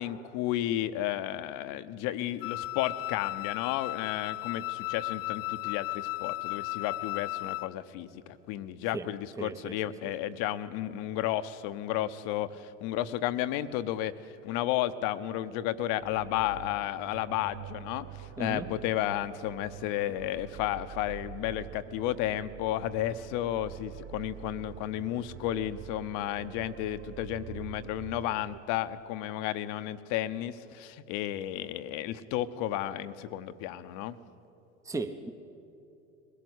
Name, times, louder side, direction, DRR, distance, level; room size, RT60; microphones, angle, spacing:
voice 1, 0.0-14.1 14.4-34.2, left 13 dB, 60° left, 12 dB, 1.0 m, -33 dB
Wind instrument woodwind instrument, 2.4-7.8, left 23 dB, 45° left, 0.4 m, -35 dB
voice 2, 9.4-9.8 18.4-18.7 34.8-35.3, right 3 dB, 10° right, 8 dB, 0.9 m, -36 dB
sound 1, 16.0-28.6, right 12 dB, 40° right, 0.6 m, -46 dB
21.5 x 16.5 x 8.1 m, 2.7 s
hypercardioid pair, 80°, 35 cm